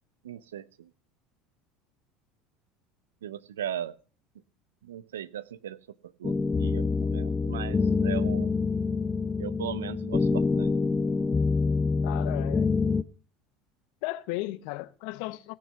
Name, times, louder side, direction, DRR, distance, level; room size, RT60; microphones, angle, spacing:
voice 1, 0.2-0.9 3.2-4.0 4.8-8.5 9.4-10.7, right 10 dB, 85° right, 0.6 m, -38 dB
sound 1, 6.2-13.0, left 4 dB, 25° left, 0.6 m, -26 dB
voice 2, 12.0-12.8 14.0-15.5, left 19 dB, 70° left, 0.8 m, -35 dB
17.5 x 6.4 x 6.8 m
hypercardioid pair, 80°, 0 cm